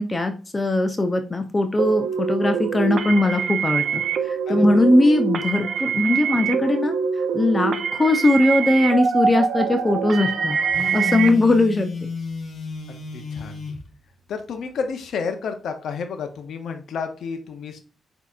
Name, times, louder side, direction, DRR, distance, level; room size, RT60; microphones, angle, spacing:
voice 1, 0.0-6.9 7.3-10.6 10.9-11.9, left 2 dB, 20° left, 7 dB, 0.4 m, -20 dB
sound 1, 1.8-11.3, right 6 dB, 70° right, 0.5 m, -24 dB
voice 2, 4.5-4.8 12.9-13.6 14.3-17.8, left 5 dB, 75° left, 6 dB, 0.5 m, -31 dB
Telephone, 10.7-13.8, left 3 dB, 50° left, 1.0 m, -32 dB
6.4 x 2.8 x 2.3 m, 0.37 s
cardioid pair, 115°, 0 cm